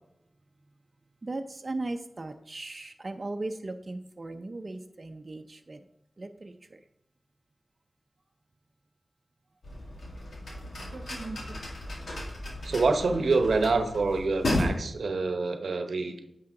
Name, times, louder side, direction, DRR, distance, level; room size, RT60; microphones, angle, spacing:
voice 1, 1.2-5.8 6.2-6.8, right 2 dB, 45° right, 5 dB, 0.6 m, -37 dB
sound 1, 9.6-14.7, left 1 dB, 80° left, 2.1 m, -34 dB
voice 2, 10.9-11.6 12.6-16.1, right 3 dB, 85° right, 7 dB, 0.9 m, -27 dB
9.5 x 5.6 x 3.8 m, 0.80 s
wide cardioid pair, 65°, 0 cm